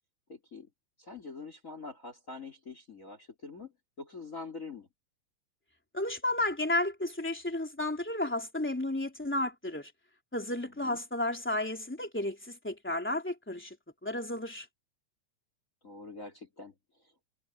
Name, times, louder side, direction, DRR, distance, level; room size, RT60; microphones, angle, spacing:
voice 1, 0.3-0.7 1.0-3.7 4.0-4.9 10.8-11.0 15.8-17.3, left 4 dB, 25° left, 3.5 m, -45 dB
voice 2, 5.9-9.9 10.3-13.7 14.0-14.7, left 1 dB, 5° left, 3.1 m, -32 dB
omnidirectional pair, 3.4 m